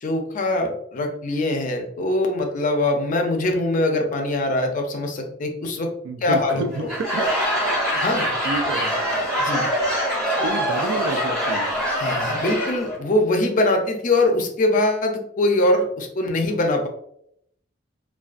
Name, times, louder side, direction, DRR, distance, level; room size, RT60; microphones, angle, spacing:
voice 1, 0.0-5.9 6.2-6.9 8.0-8.3 9.4-9.6 12.0-16.9, left 2 dB, 45° left, 3 dB, 0.4 m, -22 dB
voice 2, 6.0-7.4 7.9-8.0 8.4-9.0 10.4-11.8, right 4 dB, 90° right, 7 dB, 0.3 m, -30 dB
Laughter / Crowd, 6.7-13.0, equal, 5° left, 0.8 m, -24 dB
2.4 x 2.2 x 2.3 m, 0.72 s
head